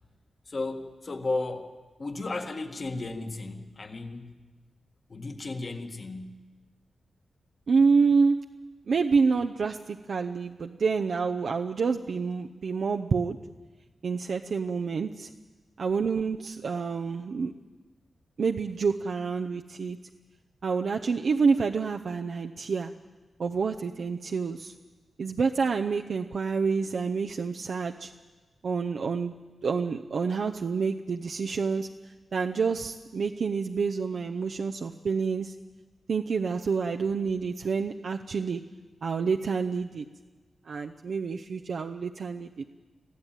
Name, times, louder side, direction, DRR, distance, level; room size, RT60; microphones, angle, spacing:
voice 1, 0.5-4.4 5.1-6.4, left 3 dB, 40° left, 5 dB, 1.8 m, -34 dB
voice 2, 7.7-8.4 8.8-13.4 14.0-15.3 15.8-17.5 18.4-20.0 20.6-22.9 23.4-24.7 25.2-28.1 28.6-29.4 29.6-31.9 32.3-35.5 36.1-38.6 39.0-40.1 40.7-42.6, right 5 dB, 65° right, 3 dB, 0.7 m, -28 dB
22.0 x 14.5 x 9.1 m, 1.3 s
wide cardioid pair, 115°, 0 cm